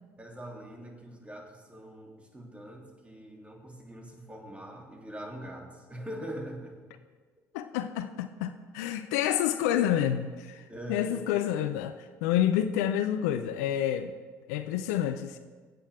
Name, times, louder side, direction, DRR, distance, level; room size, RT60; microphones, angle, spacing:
voice 1, 0.2-6.8 10.7-11.3, right 1 dB, 15° right, 1 dB, 3.1 m, -42 dB
voice 2, 7.5-14.1 14.5-15.4, left 11 dB, 75° left, 10 dB, 0.6 m, -29 dB
23.0 x 8.5 x 3.6 m, 1.5 s
hypercardioid pair, 55°, 9 cm